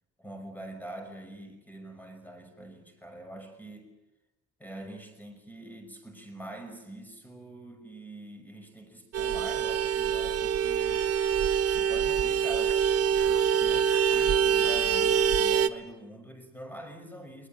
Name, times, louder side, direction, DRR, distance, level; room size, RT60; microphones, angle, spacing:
voice 1, 0.2-3.9 4.6-11.1 11.7-17.5, right 1 dB, 5° left, 7 dB, 5.8 m, -44 dB
Vehicle horn car horn honking, 9.1-15.7, right 8 dB, 55° right, 1.1 m, -25 dB
21.0 x 20.5 x 8.9 m, 1.0 s
cardioid pair, 90°, 30 cm